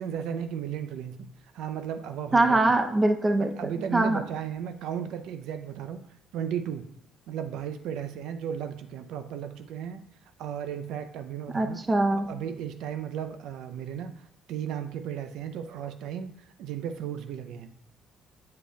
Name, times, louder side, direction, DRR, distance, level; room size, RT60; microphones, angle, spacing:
voice 1, 0.0-2.6 3.4-6.0 6.3-6.9 7.3-10.1 10.4-11.8 12.1-17.7, right 8 dB, 80° right, 9 dB, 0.4 m, -35 dB
voice 2, 2.3-4.2 11.5-12.3, right 2 dB, 20° right, 6 dB, 0.5 m, -23 dB
8.2 x 5.1 x 2.2 m, 0.80 s
cardioid pair, 110°, 0 cm